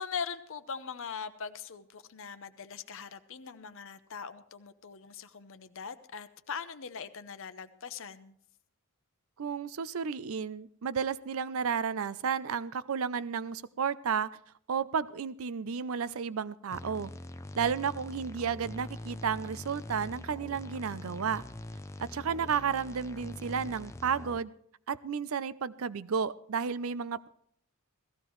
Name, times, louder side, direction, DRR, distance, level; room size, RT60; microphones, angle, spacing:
voice 1, 0.0-8.4, left 6 dB, 60° left, 11 dB, 0.8 m, -41 dB
voice 2, 9.4-14.3 14.7-17.1 17.6-21.4 22.0-24.5 24.9-27.3, right 6 dB, 65° right, 17 dB, 0.5 m, -32 dB
sound 1, 16.7-24.4, left 1 dB, 15° left, 0.5 m, -43 dB
17.5 x 14.5 x 3.1 m, 0.65 s
head